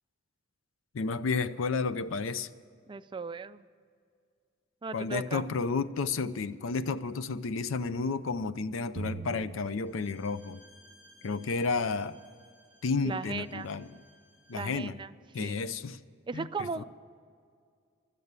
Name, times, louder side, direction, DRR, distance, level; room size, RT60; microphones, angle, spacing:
voice 1, 0.9-2.5 4.9-10.6 11.2-12.2 12.8-14.0 14.5-15.0 15.3-16.0 16.3-16.8, left 4 dB, 75° left, 15 dB, 0.5 m, -32 dB
voice 2, 2.9-3.6 4.8-5.4 13.0-13.7 14.5-15.1 15.4-15.6 16.3-16.8, right 4 dB, 25° right, 13 dB, 0.3 m, -37 dB
sound 1, 9.0-10.7, right 4 dB, 50° right, 0.7 m, -42 dB
Bowed string instrument, 9.8-14.7, equal, 60° left, 1.9 m, -61 dB
12.5 x 8.1 x 8.7 m, 2.2 s
head